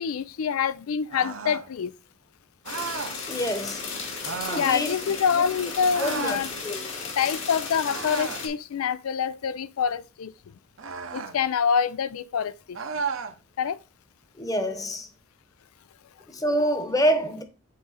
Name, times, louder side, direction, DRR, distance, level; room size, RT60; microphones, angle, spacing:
voice 1, 0.0-1.9 4.6-6.5 7.2-10.3 11.1-12.8 13.6-13.8, left 7 dB, 90° left, 0.4 m, -26 dB
sound 1, 1.1-1.7 2.6-3.2 4.2-4.7 5.9-6.5 7.9-8.5 10.8-11.4 12.7-13.4, right 5 dB, 70° right, 0.8 m, -33 dB
sound 2, 2.7-8.5, left 4 dB, 60° left, 2.3 m, -35 dB
voice 2, 3.3-4.0 4.4-5.4 6.0-7.1 14.4-15.1 16.3-17.4, equal, 15° left, 1.0 m, -27 dB
8.5 x 3.8 x 4.0 m
head